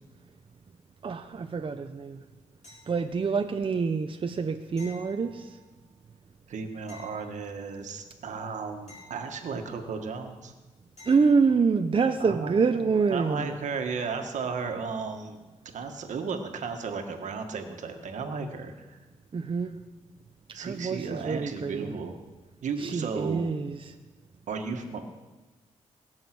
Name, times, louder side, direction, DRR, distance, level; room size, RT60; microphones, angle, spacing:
voice 1, 1.0-2.2 2.9-5.5 11.1-13.5 19.3-19.8 20.6-21.9 22.8-23.9, right 5 dB, 45° right, 6 dB, 0.8 m, -26 dB
sound 1, 2.6-3.4 4.8-5.8 6.9-7.9 8.9-9.9 11.0-11.6 14.3-14.4, left 2 dB, 60° left, 6.0 m, -52 dB
voice 2, 6.5-10.5 12.2-15.4 15.7-19.0 20.5-22.2 22.6-23.5 24.5-25.0, right 5 dB, 80° right, 5 dB, 1.7 m, -34 dB
22.0 x 7.5 x 6.2 m, 1.2 s
cardioid pair, 70°, 12 cm